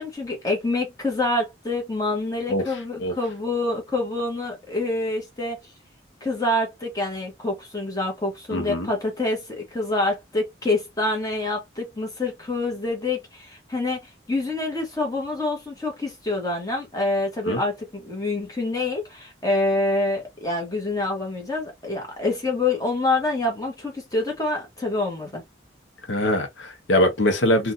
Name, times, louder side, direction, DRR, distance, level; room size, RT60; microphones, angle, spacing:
voice 1, 0.0-5.6 6.2-14.0 14.3-25.4, left 2 dB, 20° left, 1.3 m, -26 dB
voice 2, 8.5-8.9 17.5-17.6 26.1-27.7, left 1 dB, 75° left, 0.7 m, -22 dB
3.9 x 2.4 x 2.5 m
head